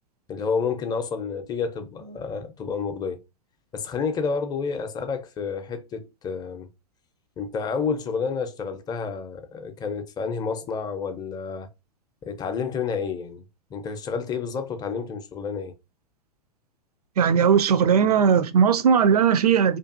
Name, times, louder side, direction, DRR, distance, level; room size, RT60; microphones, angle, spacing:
voice 1, 0.3-3.2 3.7-6.7 7.4-11.7 12.2-13.4 13.7-15.7, left 5 dB, 20° left, 0.5 m, -29 dB
voice 2, 17.2-19.8, right 7 dB, 75° right, 0.4 m, -18 dB
2.5 x 2.4 x 2.4 m
figure-of-eight pair, 100°, 20 cm